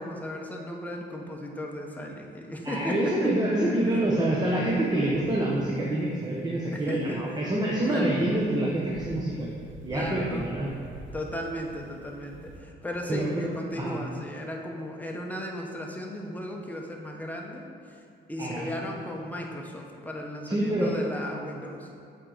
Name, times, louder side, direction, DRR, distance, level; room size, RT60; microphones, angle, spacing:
voice 1, 0.0-3.3 6.7-7.2 7.9-8.2 9.9-10.4 11.1-18.0 18.3-21.9, left 1 dB, 10° left, 0 dB, 0.9 m, -36 dB
voice 2, 2.6-9.5 9.8-10.7 13.1-13.5 13.8-13.9 18.4-18.7 20.5-20.9, right 1 dB, 20° right, -4 dB, 1.0 m, -26 dB
sound 1, 4.4-12.6, right 2 dB, 80° right, 0.9 m, -49 dB
7.5 x 4.5 x 4.0 m, 2.5 s
cardioid pair, 90°, 20 cm